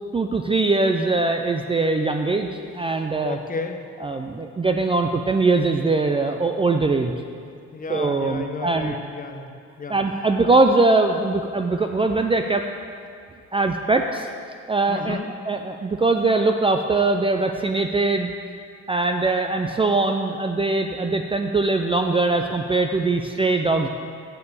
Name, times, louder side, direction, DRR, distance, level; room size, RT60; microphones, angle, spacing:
voice 1, 0.1-3.4 4.0-7.1 7.9-8.9 9.9-12.6 13.5-14.3 14.7-15.2 15.5-18.3 18.9-23.9, right 3 dB, 20° right, 4 dB, 0.4 m, -21 dB
voice 2, 3.2-3.8 7.7-10.0 14.9-15.3, left 4 dB, 30° left, 5 dB, 0.8 m, -32 dB
6.9 x 6.7 x 6.8 m, 2.3 s
cardioid pair, 90°, 30 cm